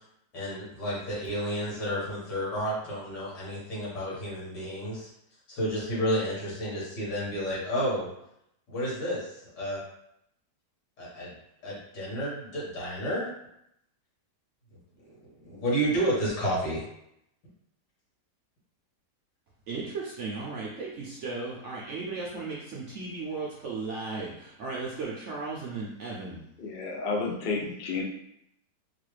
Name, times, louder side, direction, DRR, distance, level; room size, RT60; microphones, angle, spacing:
voice 1, 0.3-5.1 5.5-8.1 8.7-9.8 11.0-11.3 11.6-13.3 15.4-16.8, equal, 85° left, -6 dB, 2.1 m, -31 dB
voice 2, 19.7-26.4, right 3 dB, 65° right, -4 dB, 0.7 m, -36 dB
voice 3, 26.6-28.0, left 4 dB, 70° left, -1 dB, 0.5 m, -31 dB
3.9 x 2.3 x 3.2 m, 0.77 s
omnidirectional pair, 1.8 m